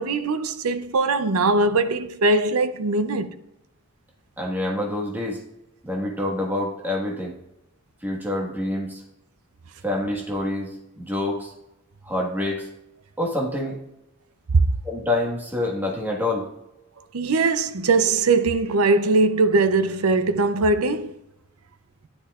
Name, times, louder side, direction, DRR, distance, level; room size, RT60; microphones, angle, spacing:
voice 1, 0.0-3.3 17.1-21.1, right 3 dB, 80° right, 0.6 m, -21 dB
voice 2, 4.4-5.4 5.8-7.3 8.0-9.0 9.8-11.5 12.0-12.7 13.2-13.8 14.8-16.5, left 1 dB, 10° right, 1.5 m, -27 dB
11.0 x 10.5 x 2.4 m
head